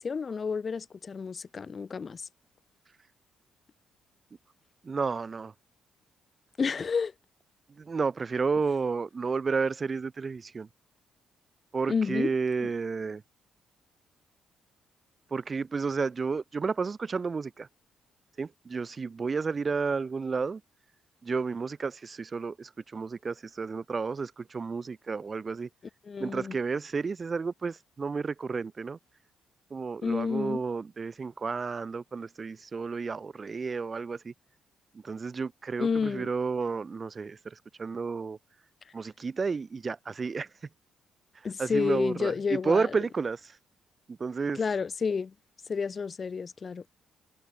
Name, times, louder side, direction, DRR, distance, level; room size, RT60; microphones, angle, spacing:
voice 1, 0.0-2.3 6.6-7.1 11.9-12.3 12.6-12.7 26.0-26.6 30.0-30.6 35.8-36.3 41.4-43.0 44.5-45.3 45.7-46.8, left 5 dB, 40° left, 1.4 m, -30 dB
voice 2, 4.8-5.5 7.8-10.7 11.7-13.2 15.3-17.7 18.4-20.6 21.2-25.7 26.2-29.0 29.7-34.3 35.0-38.4 38.9-40.5 41.6-43.5 44.1-44.6, right 4 dB, 35° right, 4.9 m, -31 dB
cardioid pair, 90°, 0 cm